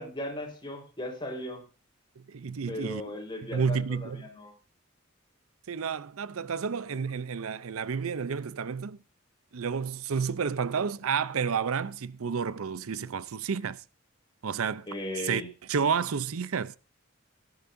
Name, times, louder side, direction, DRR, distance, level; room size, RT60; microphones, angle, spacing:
voice 1, 0.0-1.6 2.7-4.5 14.9-15.5, left 1 dB, 20° left, 4.1 m, -37 dB
voice 2, 2.3-3.0 3.5-4.2 5.7-9.0 9.5-13.8 14.4-14.9 15.2-15.4 15.7-16.8, right 6 dB, 85° right, 0.6 m, -30 dB
19.0 x 10.5 x 2.6 m
head